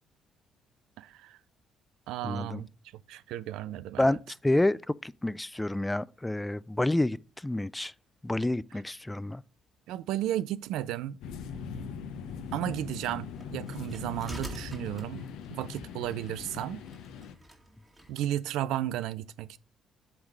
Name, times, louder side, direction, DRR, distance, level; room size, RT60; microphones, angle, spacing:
voice 1, 1.0-1.4 2.1-2.7 3.1-4.2 9.9-11.2 12.5-16.8 18.1-19.6, right 12 dB, 70° right, 0.3 m, -34 dB
voice 2, 2.2-2.6 4.0-7.9 8.2-9.4, left 1 dB, 15° left, 0.3 m, -29 dB
sound 1, 11.2-17.3, left 6 dB, 70° left, 0.7 m, -41 dB
sound 2, 13.3-18.3, equal, 20° right, 2.2 m, -48 dB
7.9 x 3.6 x 6.1 m
hypercardioid pair, 50°, 0 cm